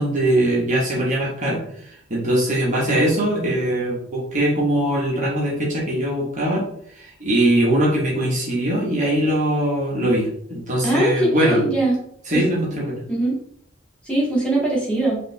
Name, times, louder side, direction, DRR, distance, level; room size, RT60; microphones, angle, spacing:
voice 1, 0.0-1.6 2.1-6.6 6.9-11.7 12.3-13.0, right 1 dB, 40° right, -5 dB, 1.2 m, -21 dB
voice 2, 10.8-11.9 12.3-12.4 13.1-13.4 14.1-15.2, right 1 dB, 5° left, -7 dB, 1.8 m, -21 dB
5.1 x 2.7 x 3.3 m, 0.67 s
head